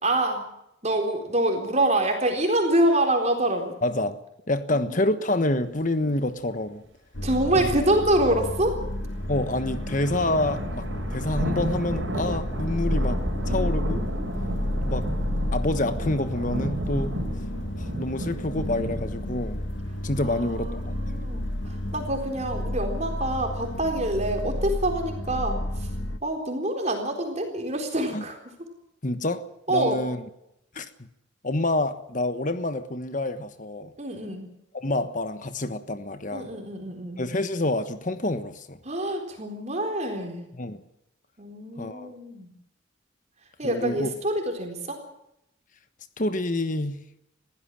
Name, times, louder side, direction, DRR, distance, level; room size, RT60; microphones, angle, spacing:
voice 1, 0.0-0.5 0.8-3.7 4.7-5.0 7.2-8.8 20.2-25.9 26.2-28.4 29.7-30.0 34.0-34.5 36.3-37.2 38.8-40.4 41.4-42.5 43.6-45.0, right 1 dB, 35° right, 4.0 m, -26 dB
voice 2, 3.8-4.2 4.5-6.8 7.6-7.7 9.3-10.8 11.1-13.2 13.5-14.0 14.8-15.1 15.5-17.1 17.8-19.6 20.0-20.9 28.1-28.2 29.0-29.4 29.7-30.2 30.7-30.9 31.4-33.9 34.7-36.5 37.2-38.8 40.5-40.8 41.8-42.1 43.6-44.1 46.2-47.0, left 2 dB, 40° left, 1.3 m, -27 dB
sound 1, 7.1-26.2, left 1 dB, 65° left, 1.6 m, -31 dB
sound 2, 8.9-24.9, right 1 dB, 65° right, 4.6 m, -34 dB
22.0 x 16.0 x 7.6 m
head